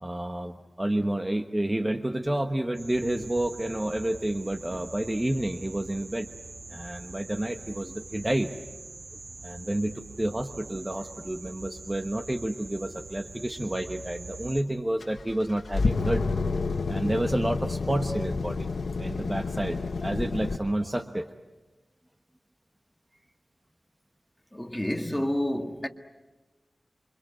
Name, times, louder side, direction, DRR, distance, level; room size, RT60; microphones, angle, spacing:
voice 1, 0.0-6.3 6.7-8.5 9.4-16.3 16.9-18.7 19.0-21.3, right 1 dB, 20° right, 1.2 m, -30 dB
sound 1, 2.7-14.6, right 3 dB, 75° right, 2.6 m, -44 dB
sound 2, 15.0-20.6, left 3 dB, 90° left, 1.2 m, -29 dB
voice 2, 24.5-25.9, left 1 dB, 10° left, 1.9 m, -29 dB
28.0 x 24.5 x 7.8 m
wide cardioid pair, 75°, 0 cm